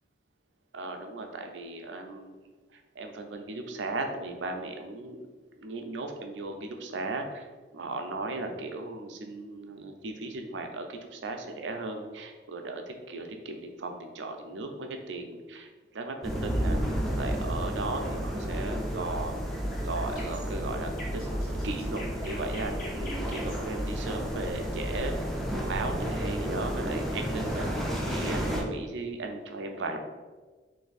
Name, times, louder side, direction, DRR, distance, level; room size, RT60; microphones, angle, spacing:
voice 1, 0.7-5.3 5.6-16.8 17.1-19.4 19.8-21.4 21.6-25.3 25.6-27.7 28.0-30.0, right 2 dB, 85° right, 5 dB, 0.5 m, -37 dB
sound 1, 16.2-28.6, equal, ahead, 0.5 m, -31 dB
sound 2, 19.5-25.6, left 1 dB, 50° left, 1.1 m, -46 dB
3.3 x 2.6 x 4.0 m, 1.4 s
head